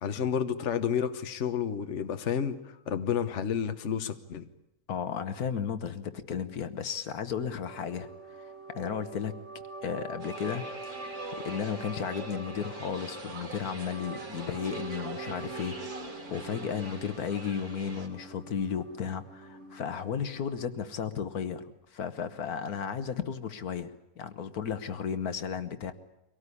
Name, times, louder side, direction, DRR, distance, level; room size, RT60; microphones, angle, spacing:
voice 1, 0.0-4.5, left 8 dB, 55° left, 9 dB, 1.3 m, -30 dB
voice 2, 4.9-9.3 9.8-10.7 11.4-21.6 21.9-25.9, left 7 dB, 80° left, 11 dB, 1.7 m, -34 dB
sound 1, 7.7-20.7, right 3 dB, 45° right, 3.1 m, -44 dB
sound 2, 10.2-18.1, right 2 dB, 80° right, 4.0 m, -43 dB
24.0 x 18.0 x 9.8 m, 0.90 s
omnidirectional pair, 1.6 m